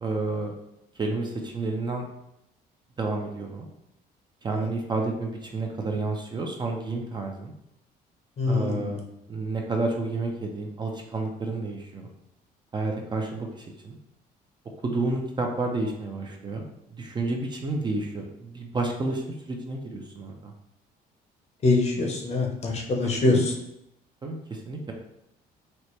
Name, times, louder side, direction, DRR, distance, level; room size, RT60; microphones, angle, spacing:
voice 1, 0.0-0.5 1.0-2.0 3.0-3.7 4.4-7.5 8.5-9.0 9.3-12.1 12.7-14.0 14.8-16.6 16.9-20.5 23.0-23.4 24.2-24.9, right 3 dB, 25° right, 1 dB, 0.5 m, -30 dB
voice 2, 8.4-9.0 21.6-23.5, left 3 dB, 40° left, 1 dB, 0.7 m, -24 dB
4.2 x 2.1 x 3.1 m, 0.81 s
cardioid pair, 110°, 17 cm